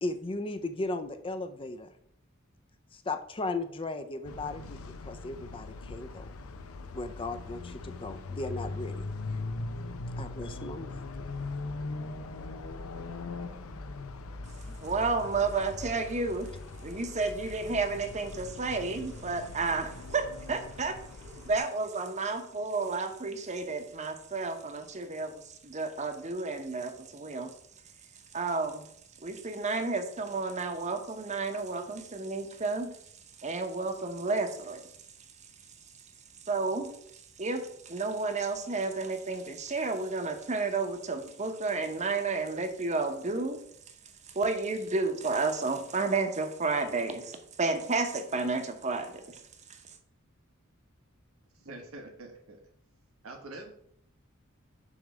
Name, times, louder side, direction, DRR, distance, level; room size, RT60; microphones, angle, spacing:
voice 1, 0.0-1.9 2.9-6.3 6.9-9.1 10.2-11.0, left 2 dB, 25° left, 9 dB, 0.5 m, -36 dB
sound 1, 4.2-21.6, left 3 dB, 85° left, 0.6 m, -40 dB
voice 2, 14.6-16.5 16.8-27.5 28.3-28.9 29.2-33.0 33.4-34.9 36.5-43.6 44.3-49.4 49.7-49.8, right 3 dB, 35° right, 7 dB, 0.9 m, -31 dB
voice 3, 51.6-52.6 53.2-53.7, right 2 dB, 85° right, 2 dB, 1.3 m, -45 dB
7.2 x 3.3 x 6.1 m, 0.67 s
head